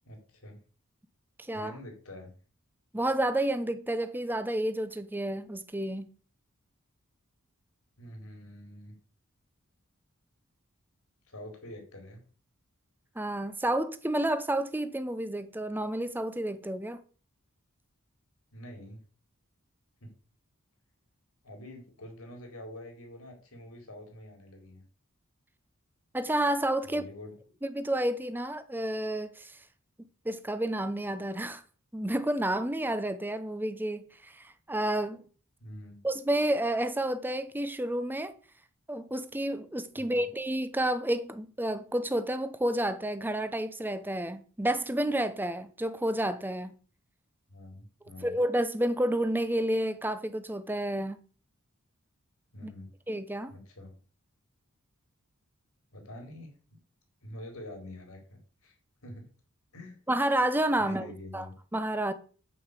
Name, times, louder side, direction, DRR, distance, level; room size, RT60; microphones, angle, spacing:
voice 1, 0.0-0.6 1.5-2.3 8.0-8.9 11.3-12.2 18.5-19.0 20.0-20.1 21.4-24.8 26.8-27.3 35.6-36.0 40.0-40.3 47.5-48.3 52.5-52.9 53.5-54.0 55.9-56.8 57.2-58.7 59.0-59.3 59.7-60.0 60.8-61.5, left 1 dB, 80° left, 4.2 m, -46 dB
voice 2, 2.9-6.1 13.2-17.0 26.1-27.0 27.7-29.5 30.2-31.6 31.9-35.2 36.0-38.3 38.9-46.7 48.2-51.2 53.1-53.5 60.1-61.5 61.7-62.1, right 1 dB, 10° right, 0.9 m, -30 dB
9.4 x 5.6 x 8.2 m
head